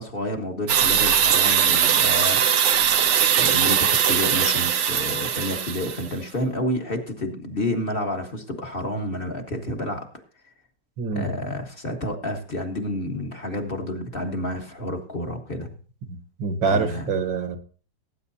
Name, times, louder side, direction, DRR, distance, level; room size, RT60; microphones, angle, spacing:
voice 1, 0.0-2.4 3.4-10.1 11.1-15.7 16.6-17.1, left 1 dB, 30° left, 3 dB, 1.5 m, -29 dB
sound 1, 0.7-6.1, right 8 dB, 60° right, 0.8 m, -20 dB
voice 2, 11.0-11.3 16.1-17.6, right 4 dB, 80° right, 8 dB, 2.0 m, -25 dB
18.5 x 9.5 x 2.8 m, 0.39 s
omnidirectional pair, 2.0 m